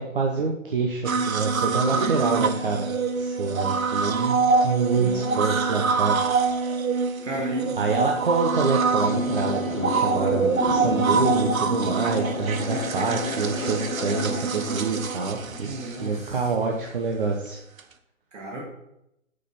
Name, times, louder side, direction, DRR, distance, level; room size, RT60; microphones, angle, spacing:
voice 1, 0.0-2.9 3.2-6.2 7.8-15.7 16.0-17.6, right 4 dB, 40° right, 1 dB, 0.8 m, -26 dB
sound 1, 1.0-16.3 17.8-17.9, right 4 dB, 90° right, 1.0 m, -25 dB
voice 2, 1.5-2.5 5.0-5.8 6.9-7.7 9.0-9.3 15.5-16.4 18.3-18.6, right 2 dB, 60° right, -4 dB, 2.1 m, -34 dB
sound 2, 8.2-16.5, left 8 dB, 75° left, 0.7 m, -34 dB
6.4 x 5.4 x 5.6 m, 0.82 s
hypercardioid pair, 170°, 40 cm